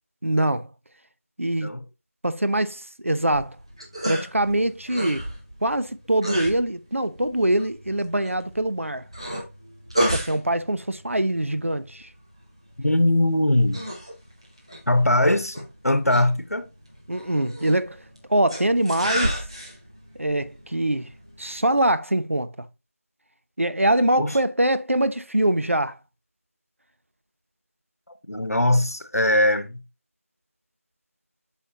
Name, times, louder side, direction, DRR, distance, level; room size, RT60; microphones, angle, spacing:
voice 1, 0.2-0.7 1.4-1.7 2.2-3.6 4.0-5.3 5.6-9.0 10.1-12.1 17.1-18.0 18.3-19.4 20.2-21.1 21.4-22.5 23.6-26.0, right 1 dB, 60° right, 0.7 m, -23 dB
sound 1, 3.2-21.9, equal, 20° right, 1.2 m, -34 dB
voice 2, 12.8-13.8 14.9-16.7 24.2-24.3 28.3-29.8, left 1 dB, 85° left, 1.2 m, -21 dB
8.4 x 5.5 x 2.8 m
figure-of-eight pair, 175°, 8 cm